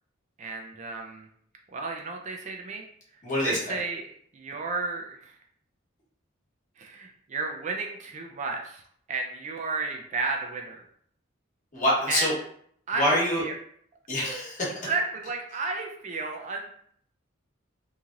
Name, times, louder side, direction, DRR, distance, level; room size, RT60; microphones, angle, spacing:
voice 1, 0.4-1.3 1.7-2.8 3.4-5.4 6.8-8.8 9.1-10.8 12.1-12.3 12.9-13.5 14.8-16.7, right 3 dB, 35° right, 2 dB, 0.4 m, -33 dB
voice 2, 3.2-3.8 11.7-12.3 13.0-13.4 14.1-14.8, left 1 dB, 40° left, -5 dB, 1.1 m, -25 dB
3.1 x 2.7 x 2.4 m, 0.63 s
head